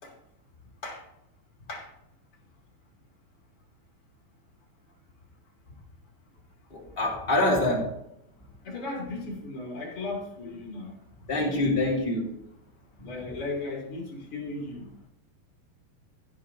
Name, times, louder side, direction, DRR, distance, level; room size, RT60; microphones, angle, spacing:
voice 1, 6.7-7.9 11.3-12.3, left 2 dB, 20° left, -3 dB, 1.8 m, -25 dB
voice 2, 8.6-10.9 13.0-14.8, left 3 dB, 35° left, -2 dB, 3.3 m, -36 dB
15.5 x 10.0 x 2.8 m, 0.79 s
omnidirectional pair, 5.1 m